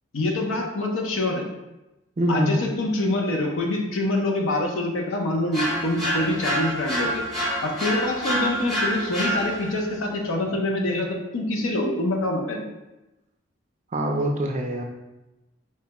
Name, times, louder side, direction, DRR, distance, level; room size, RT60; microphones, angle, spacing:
voice 1, 0.1-1.5 2.3-7.2 7.6-12.7, left 2 dB, 85° left, 1 dB, 0.6 m, -25 dB
voice 2, 2.2-2.6 13.9-14.8, right 1 dB, 35° right, 2 dB, 0.4 m, -24 dB
sound 1, 5.5-9.9, equal, ahead, 0.8 m, -27 dB
4.5 x 2.2 x 2.9 m, 1.0 s
head